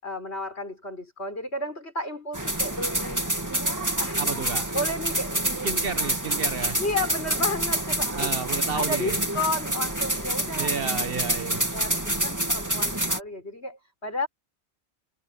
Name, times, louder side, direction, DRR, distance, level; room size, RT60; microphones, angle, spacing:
voice 1, 0.0-3.3 3.8-4.2 4.7-5.5 6.8-8.3 8.8-10.8 11.2-14.3, left 2 dB, 65° left, 6.5 m, -32 dB
sound 1, 2.3-13.2, right 1 dB, 15° right, 2.1 m, -27 dB
voice 2, 4.2-4.7 5.6-6.8 8.1-9.2 10.6-11.7, right 6 dB, 55° right, 1.1 m, -32 dB
omnidirectional pair, 1.2 m